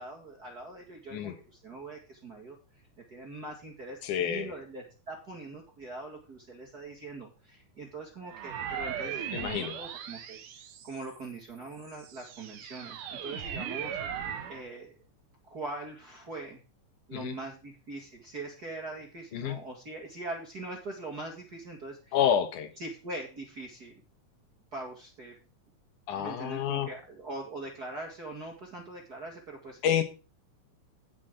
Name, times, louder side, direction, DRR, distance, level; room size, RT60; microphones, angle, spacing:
voice 1, 0.0-2.6 3.1-10.4 10.8-14.0 14.5-14.9 15.4-16.6 17.1-22.2 22.8-23.9 24.7-25.4 26.2-29.8, right 2 dB, 35° right, 0 dB, 2.1 m, -42 dB
voice 2, 4.0-4.5 9.3-9.8 17.1-17.4 19.3-19.6 22.1-22.7 26.1-26.9 29.8-30.0, left 9 dB, 85° left, 8 dB, 2.6 m, -28 dB
sound 1, 8.3-11.2 11.8-14.6, right 8 dB, 85° right, 2.7 m, -38 dB
16.5 x 5.6 x 3.8 m, 0.33 s
omnidirectional pair, 3.5 m